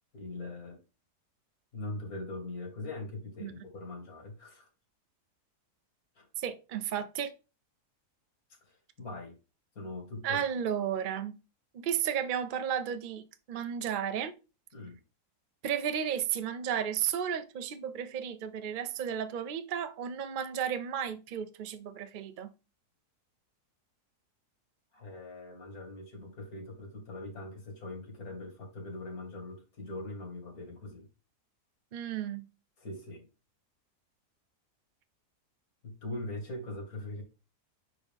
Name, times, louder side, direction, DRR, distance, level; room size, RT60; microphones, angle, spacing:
voice 1, 0.1-0.8 1.7-4.7 6.2-6.3 8.5-9.4 9.8-10.4 14.7-15.0 24.9-31.1 32.8-33.3 35.8-37.2, left 2 dB, 65° left, 2.4 m, -41 dB
voice 2, 6.4-7.3 10.2-11.4 11.7-14.4 15.6-22.5 31.9-32.4, right 8 dB, 50° right, 0.6 m, -33 dB
5.8 x 5.0 x 3.5 m
omnidirectional pair, 1.7 m